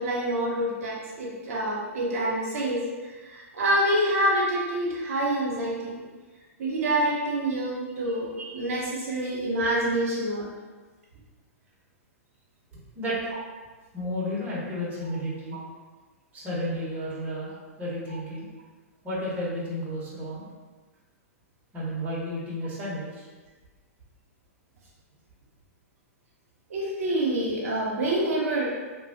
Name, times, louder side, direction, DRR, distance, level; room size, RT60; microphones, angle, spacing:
voice 1, 0.0-6.0 6.6-10.5 26.7-28.7, right 1 dB, 70° right, -5 dB, 0.8 m, -27 dB
voice 2, 13.9-15.6 16.3-17.5 17.8-18.5 19.0-20.5 21.7-23.3, equal, 20° right, -7 dB, 1.1 m, -32 dB
3.1 x 2.3 x 2.7 m, 1.3 s
hypercardioid pair, 125°, 8 cm